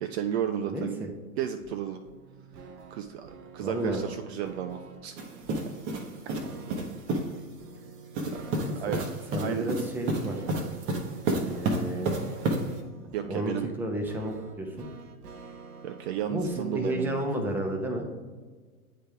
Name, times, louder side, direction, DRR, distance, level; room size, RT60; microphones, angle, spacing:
voice 1, 0.0-1.1 1.4-2.0 2.9-5.1 8.3-8.4 8.7-9.0 9.4-9.7 13.1-13.7 15.8-17.2, right 9 dB, 45° right, 7 dB, 0.5 m, -33 dB
voice 2, 0.7-1.1 3.6-4.0 6.5-7.0 8.6-8.7 9.3-10.4 11.2-12.1 13.2-14.9 16.3-18.1, right 1 dB, 5° right, 2 dB, 0.7 m, -32 dB
sound 1, 1.6-16.9, right 4 dB, 80° right, 0.9 m, -48 dB
sound 2, 5.2-7.4 8.1-12.8, right 2 dB, 30° right, 0.9 m, -31 dB
8.9 x 3.3 x 3.4 m, 1.4 s
hypercardioid pair, 105°, 45 cm